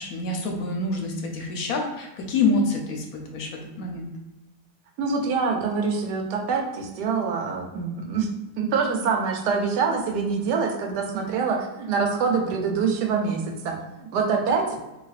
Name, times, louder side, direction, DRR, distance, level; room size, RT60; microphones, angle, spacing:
voice 1, 0.0-4.1, left 3 dB, 75° left, 2 dB, 1.0 m, -27 dB
voice 2, 5.0-8.3 8.6-14.8, right 5 dB, 85° right, 2 dB, 1.2 m, -25 dB
4.1 x 2.7 x 2.4 m, 1.0 s
omnidirectional pair, 1.7 m